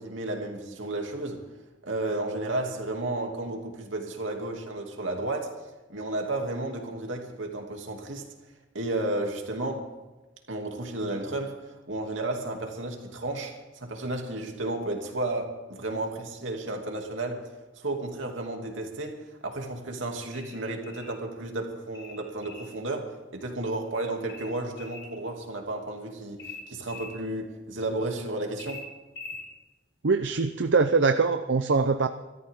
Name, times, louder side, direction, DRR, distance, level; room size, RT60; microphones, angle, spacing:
voice 1, 0.0-1.4 1.8-5.5 5.9-8.3 8.7-9.9 10.5-17.5 17.8-28.8, right 2 dB, 85° right, 2 dB, 2.7 m, -33 dB
sound 1, 20.3-21.2 21.9-22.7 24.3-25.2 26.4-27.1 28.6-29.5, left 3 dB, 60° left, 5.3 m, -43 dB
voice 2, 30.0-32.1, right 4 dB, 65° right, 9 dB, 0.6 m, -23 dB
25.0 x 13.5 x 3.7 m, 1.1 s
head